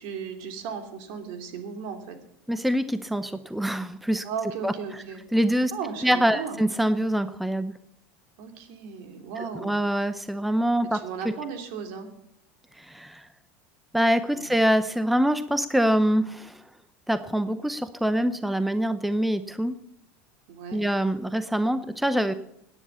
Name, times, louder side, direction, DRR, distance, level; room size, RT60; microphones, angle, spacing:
voice 1, 0.0-2.2 4.2-5.2 5.7-6.6 8.4-9.8 10.9-12.1 14.3-14.6 20.5-20.9, right 6 dB, 65° right, 5 dB, 2.8 m, -36 dB
voice 2, 2.5-4.2 4.6-5.0 5.3-5.7 6.0-7.7 9.4-11.0 12.7-13.3 13.9-16.6 17.1-19.8 20.7-22.3, equal, ahead, 12 dB, 0.6 m, -25 dB
17.5 x 9.8 x 7.1 m, 0.76 s
supercardioid pair, 130°, 6 cm